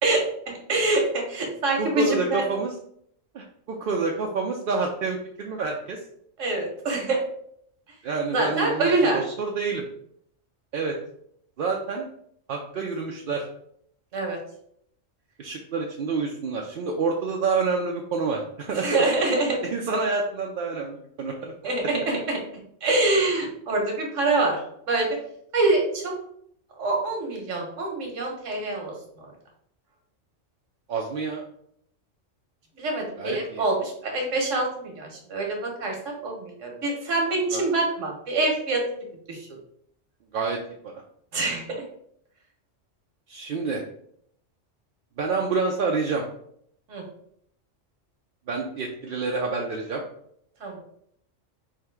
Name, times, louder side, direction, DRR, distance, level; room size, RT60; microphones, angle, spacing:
voice 1, 0.0-2.4 6.4-7.2 8.3-9.3 14.1-14.4 18.7-19.6 21.6-22.4 22.8-24.6 24.9-25.1 25.5-26.1 26.8-29.3 32.8-38.8 39.3-39.5 41.3-41.6 46.9-47.0 50.6-50.8, right 2 dB, 80° right, 1 dB, 1.4 m, -25 dB
voice 2, 1.8-2.7 3.3-6.0 8.0-8.9 9.1-9.8 10.7-11.0 11.6-12.1 12.5-13.4 15.4-19.1 19.7-21.5 30.9-31.4 33.2-33.6 37.5-37.6 40.3-40.6 40.8-41.0 43.3-43.8 45.2-46.2 48.5-50.0, right 4 dB, 60° right, 0 dB, 0.6 m, -28 dB
3.7 x 2.7 x 4.5 m, 0.69 s
omnidirectional pair, 1.3 m